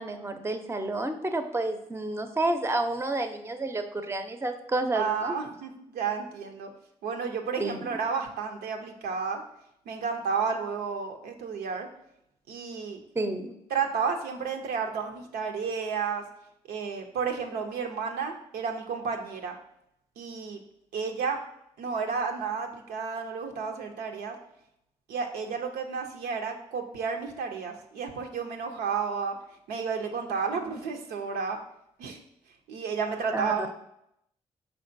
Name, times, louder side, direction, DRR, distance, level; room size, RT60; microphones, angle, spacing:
voice 1, 0.0-5.4 7.6-7.8 13.1-13.5 30.6-30.7 33.3-33.7, right 2 dB, 15° right, 8 dB, 0.5 m, -30 dB
voice 2, 4.9-6.7 7.0-9.4 9.9-11.9 12.5-13.0 13.7-16.2 16.7-19.6 20.2-20.6 20.9-21.4 21.8-24.4 25.1-29.4 29.7-31.6 32.0-32.2 32.7-33.7, right 5 dB, 80° right, 3 dB, 0.5 m, -31 dB
4.4 x 3.6 x 2.5 m, 0.77 s
supercardioid pair, 45°, 16 cm